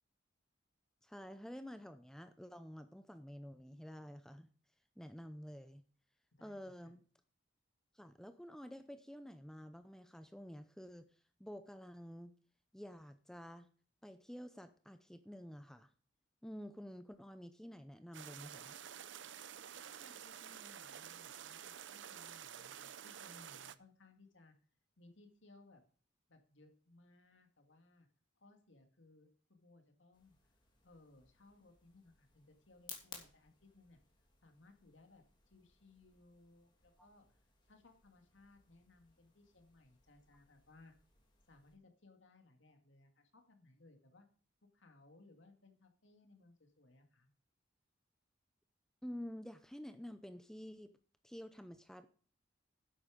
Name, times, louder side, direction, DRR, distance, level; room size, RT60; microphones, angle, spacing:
voice 1, 1.0-4.5 5.0-5.8 6.4-7.0 7.9-11.1 11.4-12.3 12.7-13.7 14.0-15.9 16.4-18.7 37.0-37.1 49.0-50.9 51.2-52.1, equal, 5° left, 9 dB, 0.6 m, -50 dB
voice 2, 6.4-6.9 19.7-24.5 25.0-25.8 26.3-28.1 28.4-30.4 30.8-34.0 34.4-37.3 37.7-40.9 41.5-44.3 44.7-47.3, left 2 dB, 75° left, 5 dB, 2.2 m, -64 dB
sound 1, 18.1-23.8, right 9 dB, 65° right, 0.6 m, -50 dB
sound 2, 30.1-41.8, left 5 dB, 25° left, 2.8 m, -60 dB
11.0 x 8.6 x 5.2 m, 0.42 s
head